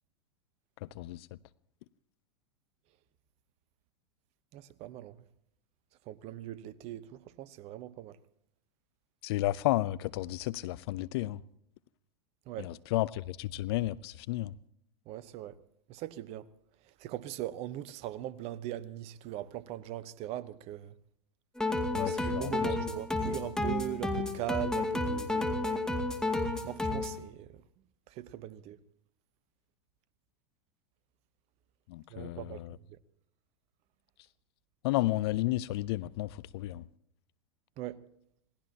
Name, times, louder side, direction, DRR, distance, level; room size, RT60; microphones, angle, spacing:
voice 1, 0.8-1.3 9.2-11.4 12.6-14.5 21.9-22.5 31.9-32.8 34.8-36.8, left 17 dB, 55° left, 0.5 m, -32 dB
voice 2, 4.5-5.2 6.1-8.2 12.5-12.7 15.1-15.6 15.9-16.5 17.0-20.9 22.1-25.6 26.5-27.6 28.1-28.8 32.1-33.0 37.8-38.0, right 13 dB, 40° right, 1.0 m, -40 dB
sound 1, 21.6-27.2, left 2 dB, 5° left, 2.2 m, -31 dB
27.0 x 18.5 x 2.9 m
hypercardioid pair, 100°, 16 cm